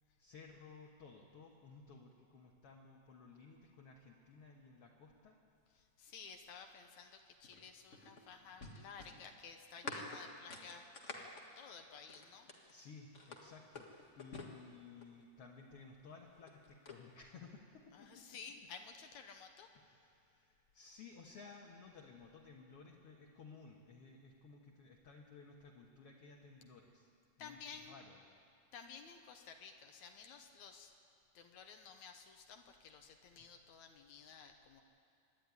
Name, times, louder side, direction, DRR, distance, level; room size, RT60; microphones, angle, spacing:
voice 1, 0.2-5.4 12.7-18.3 19.7-27.1 27.4-28.2 33.4-33.5, left 4 dB, 55° left, -1 dB, 2.1 m, -57 dB
voice 2, 6.0-10.8 11.6-12.5 17.9-19.7 27.4-28.0 28.7-30.9 31.4-34.8, left 6 dB, 70° left, 5 dB, 2.3 m, -54 dB
sound 1, 7.4-12.7 13.1-15.2 16.2-17.0, left 3 dB, 35° left, 1.4 m, -50 dB
25.0 x 11.0 x 9.7 m, 2.4 s
omnidirectional pair, 3.5 m